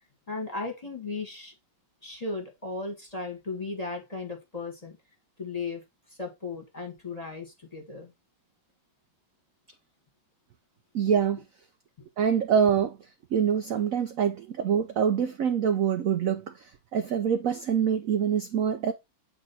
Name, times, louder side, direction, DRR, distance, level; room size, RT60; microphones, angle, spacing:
voice 1, 0.3-1.5 2.0-5.0 5.4-5.8 6.1-8.1, left 3 dB, 20° left, 1.7 m, -36 dB
voice 2, 10.9-11.4 12.2-13.0 13.3-18.9, right 8 dB, 70° right, 0.8 m, -25 dB
8.1 x 3.5 x 4.2 m
omnidirectional pair, 2.2 m